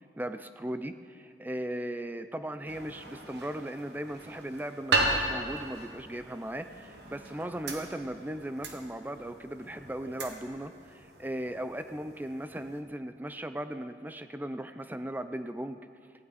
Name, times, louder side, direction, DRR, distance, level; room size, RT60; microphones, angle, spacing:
voice 1, 0.2-15.8, right 1 dB, 10° right, 10 dB, 0.5 m, -37 dB
sound 1, 2.7-12.8, right 2 dB, 65° right, 1.5 m, -36 dB
18.0 x 15.5 x 4.2 m, 2.3 s
head